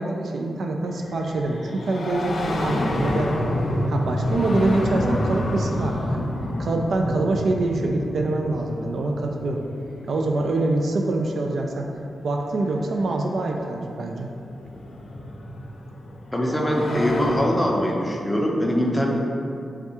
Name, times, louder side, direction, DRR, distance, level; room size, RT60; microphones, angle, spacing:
voice 1, 0.0-3.5 3.9-6.3 6.6-9.6 10.1-11.9 12.2-14.3 16.9-17.0, right 2 dB, 65° right, 2 dB, 0.3 m, -25 dB
sound 1, 0.9-11.5 12.8-12.9 13.9-17.7, left 1 dB, 60° left, 0.5 m, -29 dB
voice 2, 16.3-19.2, equal, 5° left, -1 dB, 0.6 m, -22 dB
3.5 x 3.5 x 4.2 m, 2.6 s
wide cardioid pair, 105°, 0 cm